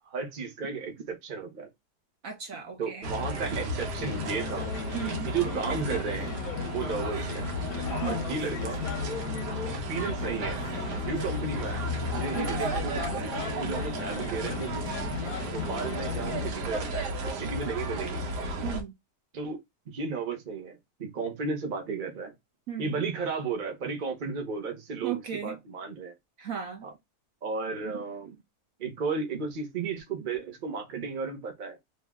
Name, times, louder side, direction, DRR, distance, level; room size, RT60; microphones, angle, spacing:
voice 1, 0.0-1.7 2.8-4.7 5.2-6.3 6.7-7.5 8.0-8.8 9.7-10.6 10.9-14.8 15.4-18.2 19.3-19.6 19.9-22.3 22.8-26.1 26.8-26.9 27.4-28.4 28.8-31.8, right 5 dB, 35° right, 1.0 m, -34 dB
voice 2, 2.2-3.2 4.9-5.3 8.0-8.3 12.3-12.5 18.6-18.9 22.7-22.9 25.0-25.6 26.4-26.8, right 8 dB, 60° right, 1.2 m, -36 dB
sound 1, 3.0-18.8, right 1 dB, 80° right, 1.5 m, -33 dB
sound 2, 4.0-16.5, left 8 dB, 70° left, 1.0 m, -37 dB
3.2 x 2.8 x 3.5 m
omnidirectional pair, 1.8 m